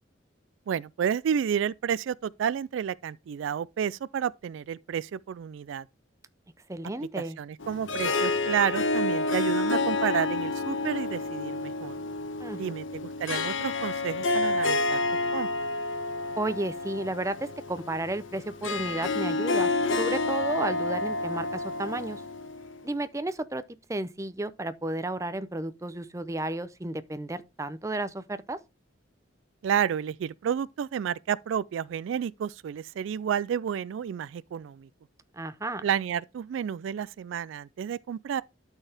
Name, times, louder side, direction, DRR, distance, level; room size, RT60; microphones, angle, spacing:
voice 1, 0.7-5.9 7.2-12.0 12.5-15.0 15.3-15.7 29.6-34.9 35.8-38.4, right 8 dB, 80° right, 0.3 m, -30 dB
voice 2, 6.7-7.4 12.4-12.7 16.4-19.7 20.0-22.2 22.8-23.6 23.9-28.6 35.3-35.8, right 2 dB, 15° right, 0.5 m, -32 dB
Harp, 7.6-22.9, left 3 dB, 85° left, 1.2 m, -29 dB
12.0 x 4.5 x 3.4 m
head